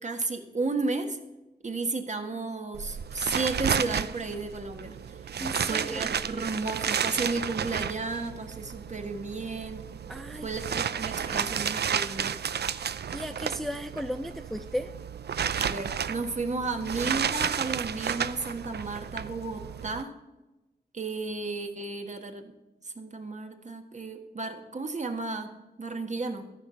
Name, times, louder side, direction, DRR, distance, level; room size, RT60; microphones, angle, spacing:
voice 1, 0.0-1.2 1.6-5.2 5.5-9.8 10.4-12.4 15.6-20.1 20.9-22.5 22.8-25.5 25.8-26.5, right 3 dB, 45° right, 5 dB, 1.5 m, -33 dB
sound 1, 2.7-20.0, right 8 dB, 70° right, 0.5 m, -32 dB
voice 2, 5.4-6.1 10.1-10.9 11.3-11.5 13.1-14.9, equal, ahead, 9 dB, 0.4 m, -35 dB
14.0 x 6.1 x 6.8 m, 1.0 s
wide cardioid pair, 95°, 17 cm